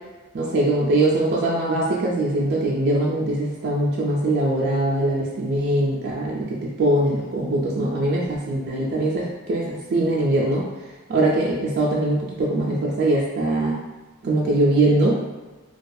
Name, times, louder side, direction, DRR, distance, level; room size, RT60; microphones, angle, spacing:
voice 1, 0.3-10.7 11.1-13.8 14.2-15.2, right 1 dB, 50° right, -4 dB, 0.4 m, -22 dB
2.3 x 2.3 x 2.6 m, 1.2 s
head